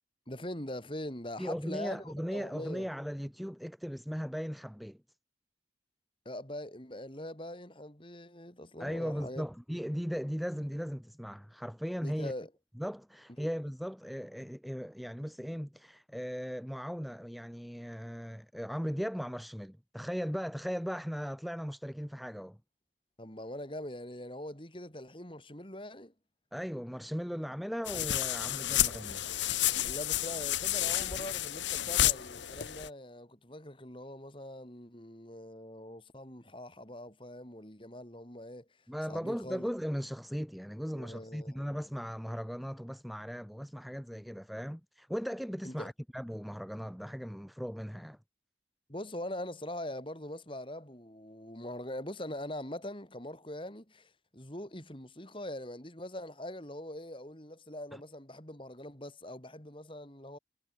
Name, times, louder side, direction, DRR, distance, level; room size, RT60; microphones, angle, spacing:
voice 1, 0.3-2.9 6.2-9.5 12.0-12.5 23.2-26.1 29.8-38.7 39.1-39.7 40.8-41.7 45.6-45.9 48.9-60.4, left 1 dB, 30° left, 4.4 m, -42 dB
voice 2, 1.4-5.0 8.8-12.3 12.8-22.6 26.5-29.3 38.9-48.2 57.9-58.0, equal, ahead, 0.7 m, -38 dB
sound 1, 27.8-32.9, left 12 dB, 85° left, 1.1 m, -31 dB
head